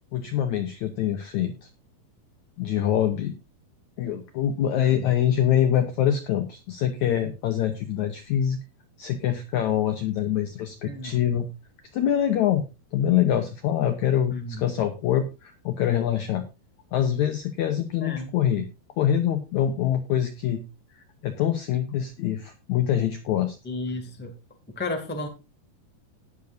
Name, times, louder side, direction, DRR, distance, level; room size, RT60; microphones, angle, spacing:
voice 1, 0.1-1.7 2.6-3.4 4.0-8.6 9.0-11.5 11.9-12.7 12.9-16.4 16.9-18.7 19.0-20.6 20.9-23.6, left 10 dB, 85° left, 8 dB, 1.7 m, -25 dB
voice 2, 4.7-5.1 10.8-11.2 14.3-14.6 18.0-18.3 23.6-24.3 24.7-25.3, left 2 dB, 5° left, 4 dB, 1.2 m, -33 dB
18.5 x 6.9 x 2.6 m, 0.28 s
omnidirectional pair, 4.6 m